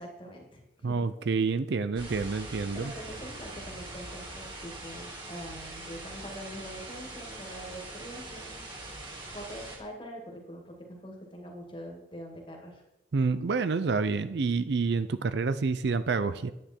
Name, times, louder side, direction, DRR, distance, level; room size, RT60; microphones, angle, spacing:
voice 1, 0.0-1.0 2.7-8.6 9.3-12.8, equal, 25° left, 1 dB, 2.0 m, -44 dB
voice 2, 0.8-2.9 13.1-16.5, right 4 dB, 60° right, 13 dB, 0.4 m, -28 dB
sound 1, 1.9-9.8, right 2 dB, 25° right, 2.1 m, -42 dB
10.0 x 9.1 x 4.4 m, 0.91 s
head